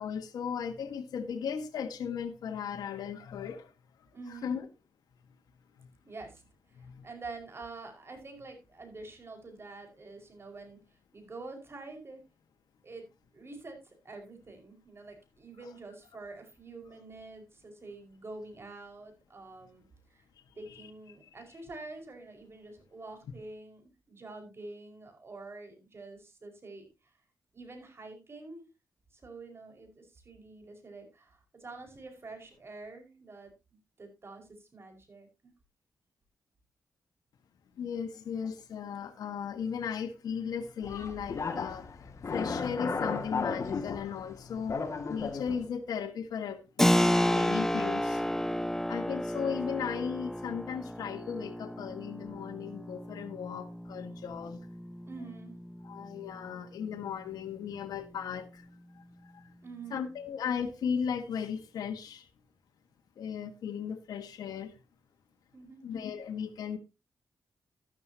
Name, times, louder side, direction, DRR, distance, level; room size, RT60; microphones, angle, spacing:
voice 1, 0.0-3.7 4.3-4.7 5.8-5.9 6.7-7.1 20.7-20.8 37.7-44.8 45.1-48.2 48.9-54.7 55.8-58.7 58.9-59.5 59.9-62.3 63.2-64.7 65.8-66.8, left 7 dB, 85° left, 1.6 m, -36 dB
voice 2, 4.1-4.6 6.0-6.4 7.0-10.8 11.1-12.2 12.8-13.0 13.3-19.8 20.1-20.2 20.6-26.9 27.5-28.6 29.1-33.5 34.0-35.5 55.0-55.5 59.6-60.1 65.5-65.8, right 3 dB, 40° right, 5.1 m, -47 dB
sound 1, 40.8-45.6, left 4 dB, 50° left, 2.2 m, -35 dB
Keyboard (musical), 46.8-57.2, equal, 5° left, 0.7 m, -32 dB
12.5 x 12.0 x 2.9 m
cardioid pair, 80°, 7 cm